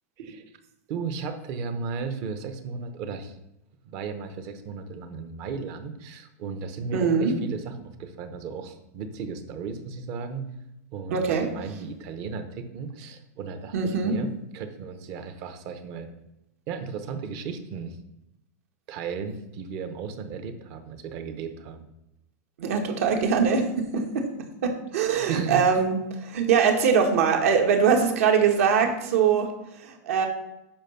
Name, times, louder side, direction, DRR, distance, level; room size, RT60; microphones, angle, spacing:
voice 1, 0.9-3.4 3.8-10.5 10.9-16.1 16.7-18.0 18.9-21.9 25.1-25.7, right 5 dB, 30° right, 8 dB, 0.9 m, -35 dB
voice 2, 6.9-7.3 11.1-11.5 13.7-14.1 22.6-24.3 24.6-30.3, right 6 dB, 60° right, 4 dB, 1.8 m, -22 dB
8.8 x 6.0 x 5.8 m, 0.88 s
supercardioid pair, 180°, 9 cm